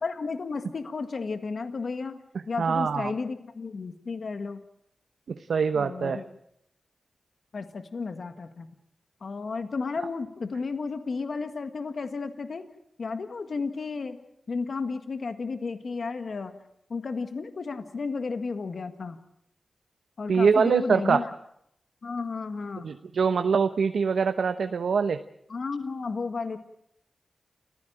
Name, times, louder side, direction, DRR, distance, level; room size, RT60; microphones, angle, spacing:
voice 1, 0.0-4.6 5.7-6.2 7.5-8.7 9.2-12.7 13.0-14.2 14.5-16.5 16.9-19.2 20.2-21.3 22.0-22.9 25.5-26.6, left 4 dB, 70° left, 8 dB, 1.8 m, -33 dB
voice 2, 2.6-3.1 5.3-6.2 20.3-21.2 22.8-25.2, right 5 dB, 85° right, 9 dB, 0.9 m, -24 dB
29.0 x 15.5 x 8.9 m, 0.76 s
cardioid pair, 55°, 0 cm